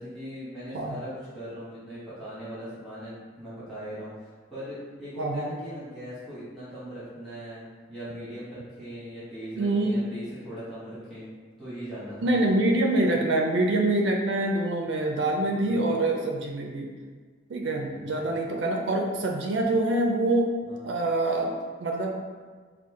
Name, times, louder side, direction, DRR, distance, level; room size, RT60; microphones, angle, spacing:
voice 1, 0.0-11.3 11.6-12.5 15.6-15.9 17.6-18.3 20.7-20.8, equal, ahead, -13 dB, 1.2 m, -40 dB
voice 2, 5.2-5.5 9.6-10.0 12.2-16.9 17.5-20.5 20.8-21.5 21.8-22.2, right 2 dB, 70° right, 1 dB, 0.4 m, -25 dB
4.2 x 2.2 x 3.6 m, 1.5 s
head